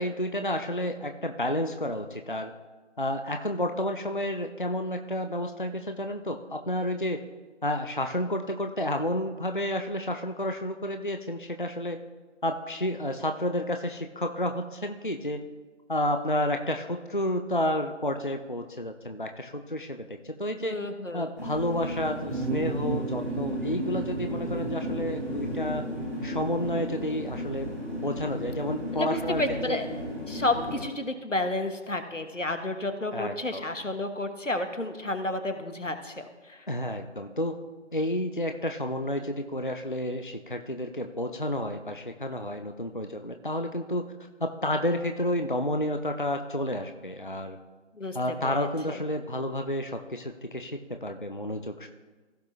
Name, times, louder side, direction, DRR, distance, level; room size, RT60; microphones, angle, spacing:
voice 1, 0.0-2.5 3.0-7.2 7.6-12.0 12.4-15.4 15.9-20.8 21.1-25.8 26.2-27.7 28.0-29.4 29.7-29.8 30.7-30.8 33.1-33.6 36.7-37.5 37.9-44.1 44.4-47.6 48.1-51.9, left 1 dB, 45° left, 6 dB, 0.5 m, -30 dB
voice 2, 20.6-21.3 28.9-29.8 30.3-36.6 48.0-48.2 48.4-49.0, left 2 dB, 85° left, 7 dB, 1.5 m, -31 dB
sound 1, 21.4-30.8, left 1 dB, 15° left, 2.9 m, -35 dB
sound 2, 22.3-29.5, right 3 dB, 70° right, 0.7 m, -37 dB
16.0 x 6.0 x 3.2 m, 1.3 s
figure-of-eight pair, 170°, 37 cm